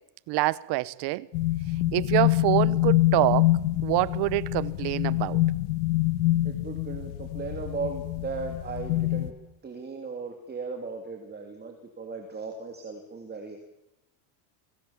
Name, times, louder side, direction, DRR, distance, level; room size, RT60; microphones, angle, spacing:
voice 1, 0.3-1.3 1.9-5.4, right 19 dB, 50° right, 1.0 m, -26 dB
sound 1, 1.3-9.3, left 17 dB, 85° left, 2.1 m, -26 dB
voice 2, 6.4-9.3 9.6-13.6, right 4 dB, 20° right, 3.0 m, -37 dB
29.5 x 22.0 x 7.4 m
cardioid pair, 140°, 50 cm